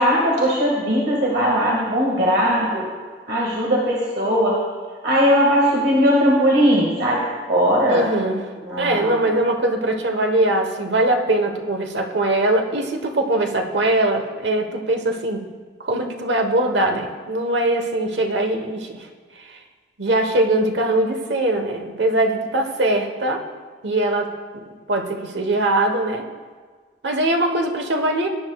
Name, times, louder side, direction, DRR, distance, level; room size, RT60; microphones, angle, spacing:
voice 1, 0.0-2.9 3.3-4.6 5.0-8.1 8.6-9.3, equal, 70° right, -3 dB, 1.9 m, -19 dB
voice 2, 7.9-15.5 15.8-19.1 20.0-23.4 23.8-24.6 24.9-26.2 27.0-28.3, right 1 dB, 90° right, 4 dB, 1.2 m, -21 dB
19.0 x 9.7 x 2.4 m, 1.5 s
head